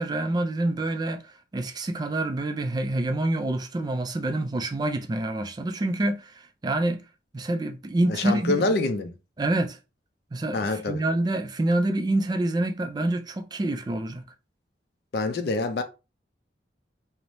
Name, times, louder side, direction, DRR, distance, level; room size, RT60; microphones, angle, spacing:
voice 1, 0.0-7.0 7.3-8.7 9.4-9.8 10.3-14.2, right 2 dB, 25° right, 0.3 m, -27 dB
voice 2, 8.1-9.1 10.5-11.0 15.1-15.8, left 2 dB, 60° left, 0.4 m, -26 dB
2.6 x 2.0 x 3.0 m
head